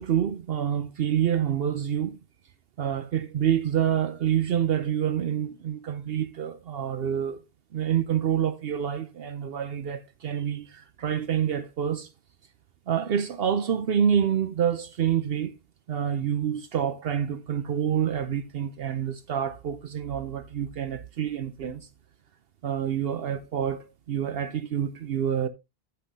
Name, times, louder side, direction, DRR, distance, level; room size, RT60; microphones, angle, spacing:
voice 1, 0.0-2.2 2.8-7.4 7.7-12.1 12.9-15.5 15.9-21.9 22.6-25.5, right 9 dB, 70° right, 0.9 m, -27 dB
14.5 x 5.7 x 2.7 m
omnidirectional pair, 1.1 m